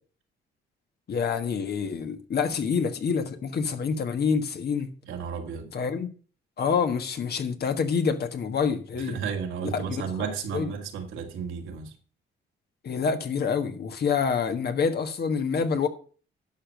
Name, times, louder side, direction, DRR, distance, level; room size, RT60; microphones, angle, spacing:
voice 1, 1.1-4.9 5.7-6.1 6.6-9.2 9.7-10.7 12.8-15.9, left 6 dB, 55° left, 1.5 m, -27 dB
voice 2, 5.0-5.7 9.0-11.9, right 6 dB, 80° right, 2.1 m, -33 dB
11.5 x 5.2 x 6.5 m
cardioid pair, 90°, 20 cm